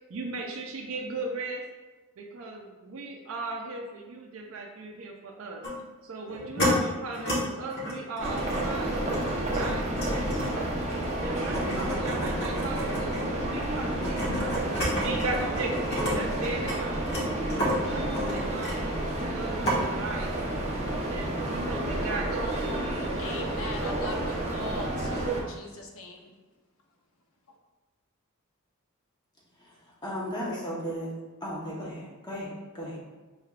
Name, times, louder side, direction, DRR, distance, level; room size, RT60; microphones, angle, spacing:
voice 1, 0.1-1.6 2.2-5.6 6.0-9.0 9.4-17.1 17.8-20.4 21.1-23.2, right 3 dB, 65° right, 0 dB, 0.4 m, -37 dB
sound 1, 5.6-5.8 6.3-6.7 7.1-7.4 7.7-16.1 16.4-19.3 19.6-19.8, equal, 55° left, 1.2 m, -32 dB
sound 2, 8.2-25.4, right 1 dB, 30° right, 0.7 m, -30 dB
voice 2, 23.2-26.2, left 1 dB, 70° left, 2 dB, 0.7 m, -39 dB
voice 3, 29.6-31.1 31.4-33.0, equal, 20° left, -5 dB, 0.9 m, -35 dB
5.4 x 3.3 x 2.4 m, 1.2 s
head